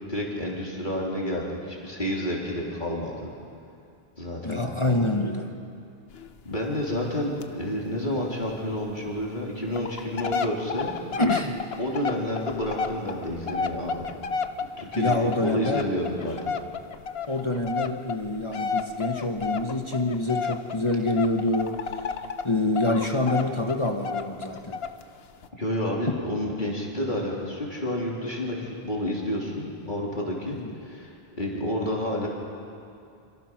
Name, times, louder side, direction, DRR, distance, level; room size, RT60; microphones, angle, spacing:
voice 1, 0.1-3.3 4.2-4.7 6.4-11.0 11.8-14.1 14.6-15.1 15.4-16.4 25.5-32.3, left 1 dB, 50° left, -3 dB, 3.6 m, -30 dB
voice 2, 4.4-5.5 11.2-11.6 14.9-15.8 17.3-22.0 22.4-24.8 26.1-26.2 30.5-30.7, left 2 dB, 30° left, 3 dB, 1.5 m, -26 dB
sound 1, 6.1-6.3 6.5-6.6 6.9-7.1 7.4-7.5 7.9-8.0 8.5-8.6 9.2-9.3 9.7-22.5 22.8-25.0 25.4-25.5, left 5 dB, 75° left, 1.1 m, -31 dB
27.5 x 26.5 x 6.2 m, 2.6 s
omnidirectional pair, 1.0 m